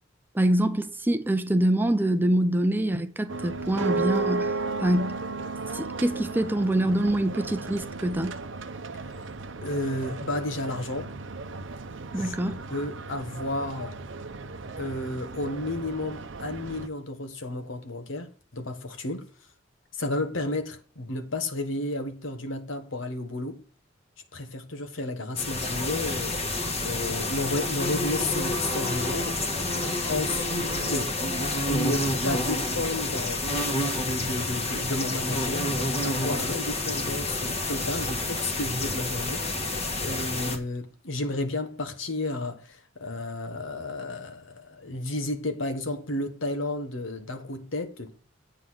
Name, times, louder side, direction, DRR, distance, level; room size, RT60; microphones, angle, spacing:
voice 1, 0.3-5.2 5.7-8.4 12.1-12.6, right 1 dB, 10° right, 0.5 m, -25 dB
sound 1, 3.3-16.9, right 3 dB, 70° right, 0.7 m, -35 dB
voice 2, 9.6-11.1 12.2-14.0 14.8-19.3 19.9-23.6 24.3-29.7 30.1-31.2 31.7-33.5 33.9-35.7 36.0-48.1, left 2 dB, 80° left, 1.4 m, -32 dB
sound 2, 25.4-40.6, left 2 dB, 35° left, 1.5 m, -29 dB
8.3 x 3.8 x 6.3 m
head